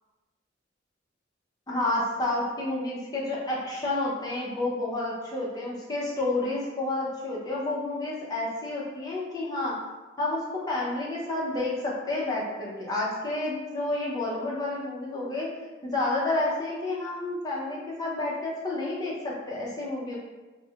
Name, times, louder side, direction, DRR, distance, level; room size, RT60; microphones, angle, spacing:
voice 1, 1.7-9.7 10.2-15.5 15.8-20.2, left 2 dB, 20° left, -5 dB, 0.4 m, -30 dB
2.3 x 2.0 x 2.7 m, 1.2 s
head